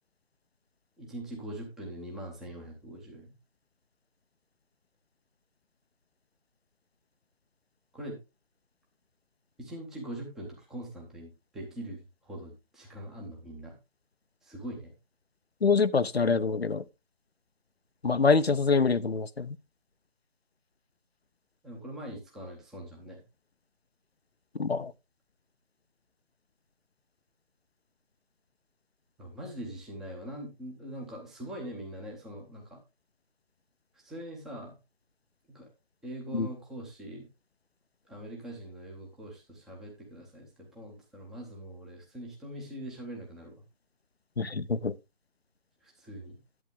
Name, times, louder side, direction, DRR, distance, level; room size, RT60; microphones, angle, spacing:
voice 1, 1.0-3.3 7.9-8.2 9.6-13.8 14.4-14.9 21.6-23.2 29.2-32.8 33.9-34.7 35.5-35.7 36.0-37.3 38.0-43.6 45.8-46.4, right 1 dB, ahead, 0.7 m, -42 dB
voice 2, 15.6-16.8 18.0-19.6 24.6-24.9 36.3-36.5 44.4-44.9, left 4 dB, 90° left, 0.8 m, -25 dB
11.0 x 8.2 x 3.5 m
figure-of-eight pair, 150°, 30 cm